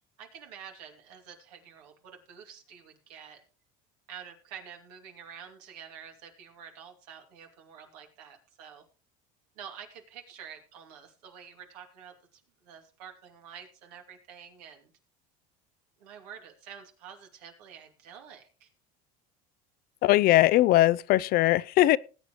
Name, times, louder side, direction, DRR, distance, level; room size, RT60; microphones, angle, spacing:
voice 1, 0.2-3.4 4.1-8.8 9.6-14.9 16.0-18.7, right 8 dB, 85° right, 2.6 m, -48 dB
voice 2, 20.0-22.0, left 16 dB, 50° left, 0.4 m, -20 dB
19.5 x 8.3 x 3.1 m
supercardioid pair, 105°, 20 cm